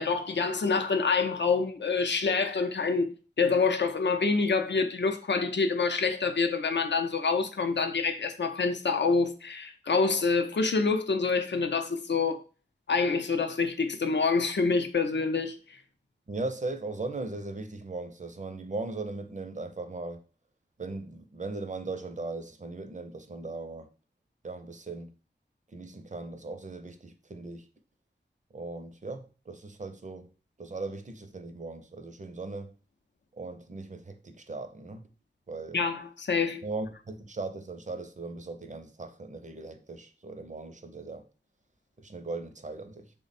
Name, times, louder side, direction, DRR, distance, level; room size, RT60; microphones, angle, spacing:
voice 1, 0.0-3.1 3.4-12.4 12.9-15.8 35.7-36.6, left 4 dB, 70° left, 0.5 m, -27 dB
voice 2, 16.3-20.2 20.8-23.9 24.4-25.1 25.7-27.7 28.5-30.3 30.6-32.7 33.3-35.0 35.5-35.8 36.6-41.3 42.0-43.1, right 3 dB, 40° right, 0.5 m, -38 dB
3.3 x 2.1 x 4.1 m
wide cardioid pair, 55°, 19 cm